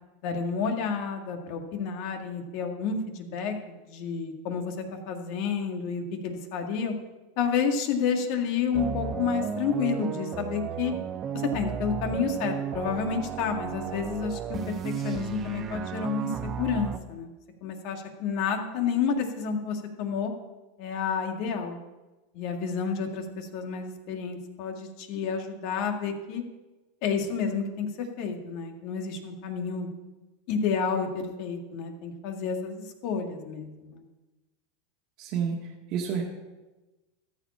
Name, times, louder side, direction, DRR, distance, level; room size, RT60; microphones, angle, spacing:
voice 1, 0.2-6.9 7.4-10.9 11.3-17.3 17.6-20.3 20.8-21.8 22.3-26.4 27.0-27.9 28.2-29.9 30.5-34.0, left 6 dB, 60° left, 4 dB, 1.9 m, -30 dB
sound 1, 8.7-17.0, right 7 dB, 35° right, 0.9 m, -34 dB
voice 2, 35.2-35.6 35.9-36.2, right 7 dB, 55° right, 0 dB, 1.7 m, -28 dB
14.0 x 5.0 x 8.6 m, 1.1 s
hypercardioid pair, 110°, 0 cm